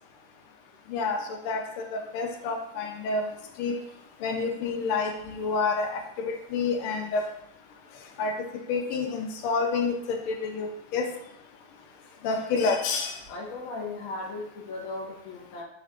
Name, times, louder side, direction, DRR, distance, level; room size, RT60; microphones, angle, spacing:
voice 1, 0.9-3.2 3.6-3.7 4.2-7.3 8.2-8.3 8.7-11.1 12.2-13.2, left 4 dB, 80° left, 4 dB, 1.5 m, -28 dB
voice 2, 13.3-15.6, left 3 dB, 60° left, -1 dB, 0.9 m, -37 dB
5.4 x 2.4 x 3.5 m, 0.77 s
omnidirectional pair, 2.4 m